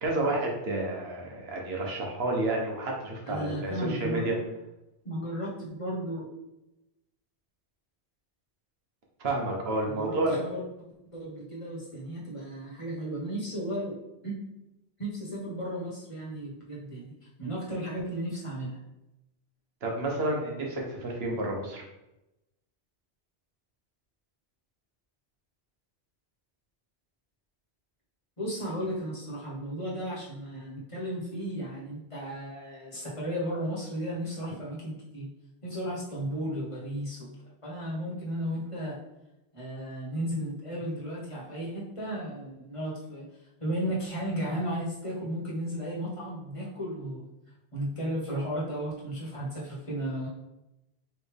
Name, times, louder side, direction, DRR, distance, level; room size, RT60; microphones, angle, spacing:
voice 1, 0.0-4.4 9.2-10.4 19.8-21.8, right 2 dB, 70° right, 0 dB, 1.2 m, -30 dB
voice 2, 3.2-4.3 5.0-6.3 9.8-10.6 11.0-14.0 14.2-14.3 15.0-18.8 28.4-35.3 35.6-37.3 37.6-39.0 39.5-43.2 43.6-47.2 47.7-50.3, equal, 30° left, -5 dB, 1.4 m, -34 dB
4.4 x 3.3 x 3.4 m, 0.92 s
omnidirectional pair, 1.1 m